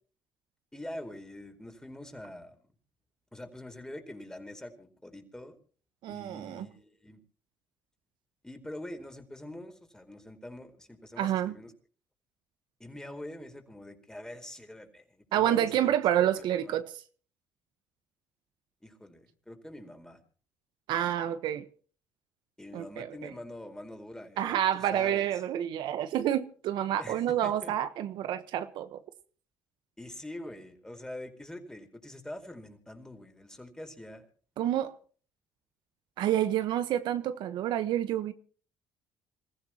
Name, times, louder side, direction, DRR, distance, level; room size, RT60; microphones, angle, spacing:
voice 1, 0.7-2.6 3.3-5.6 6.1-7.2 8.4-11.7 12.8-16.0 16.4-16.8 18.8-20.2 22.6-25.3 27.0-27.7 30.0-34.3, left 1 dB, 10° left, 4.5 m, -44 dB
voice 2, 6.0-6.7 11.2-11.6 15.3-16.9 20.9-21.6 22.7-23.3 24.4-29.0 34.6-34.9 36.2-38.3, right 11 dB, 75° right, 1.2 m, -28 dB
27.5 x 15.0 x 3.0 m
supercardioid pair, 75°, 8 cm